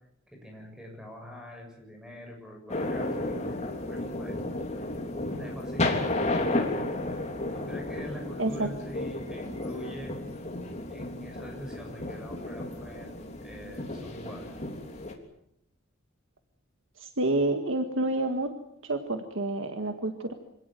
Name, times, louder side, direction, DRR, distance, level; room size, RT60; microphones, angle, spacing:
voice 1, 0.3-4.4 5.3-6.6 7.5-10.1 10.9-14.6, equal, 5° right, 1 dB, 7.4 m, -44 dB
sound 1, 2.7-15.1, left 2 dB, 35° left, 3.4 m, -33 dB
voice 2, 17.0-18.5 18.8-20.3, right 2 dB, 70° right, 6 dB, 1.8 m, -28 dB
26.0 x 17.5 x 9.3 m, 0.77 s
head